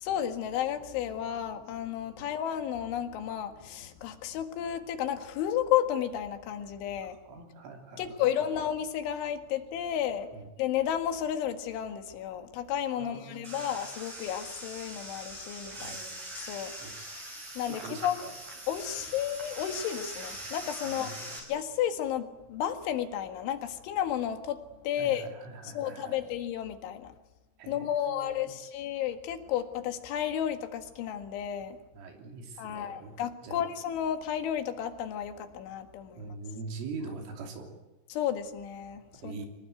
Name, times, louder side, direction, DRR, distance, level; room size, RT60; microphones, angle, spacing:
voice 1, 0.0-7.2 8.0-10.3 10.6-16.0 16.4-16.7 17.6-18.2 18.7-21.2 21.5-24.6 24.8-25.3 25.6-27.1 27.7-31.8 32.6-36.3 38.1-39.5, left 10 dB, 75° left, 7 dB, 4.1 m, -32 dB
voice 2, 7.3-8.5 10.3-10.5 13.0-13.7 15.8-16.2 16.8-16.9 17.8-18.3 20.8-21.4 25.0-26.2 27.6-28.6 31.9-33.1 33.4-33.7 36.2-37.7 39.2-39.5, right 4 dB, 90° right, 2 dB, 5.7 m, -43 dB
sound 1, 13.4-21.4, right 1 dB, 40° right, 6.5 m, -42 dB
25.0 x 20.0 x 9.4 m, 1.1 s
omnidirectional pair, 5.6 m